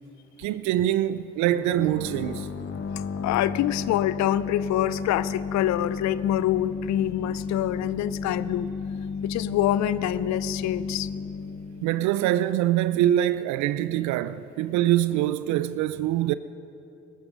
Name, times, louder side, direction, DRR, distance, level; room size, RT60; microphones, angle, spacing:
voice 1, 0.4-2.5 11.8-16.3, right 13 dB, 70° right, 0.5 m, -24 dB
sound 1, 1.5-13.0, left 5 dB, 40° left, 1.1 m, -33 dB
voice 2, 3.0-8.7 9.2-11.1, left 12 dB, 65° left, 0.6 m, -26 dB
18.0 x 14.0 x 5.4 m
hypercardioid pair, 50°, 30 cm